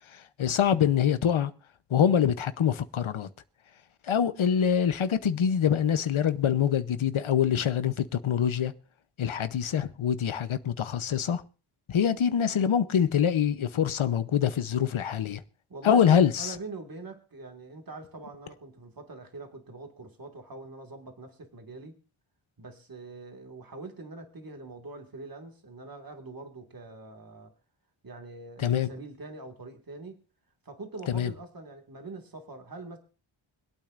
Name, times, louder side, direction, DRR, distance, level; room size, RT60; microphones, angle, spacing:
voice 1, 0.1-1.5 1.9-3.3 4.0-8.7 9.2-11.4 11.9-15.4 15.8-16.5 28.6-28.9 31.1-31.3, left 8 dB, 85° left, 0.9 m, -25 dB
voice 2, 15.7-22.0 22.6-27.5 28.0-30.2 30.6-33.0, right 3 dB, 45° right, 2.0 m, -43 dB
25.5 x 8.7 x 2.5 m
wide cardioid pair, 80°, 48 cm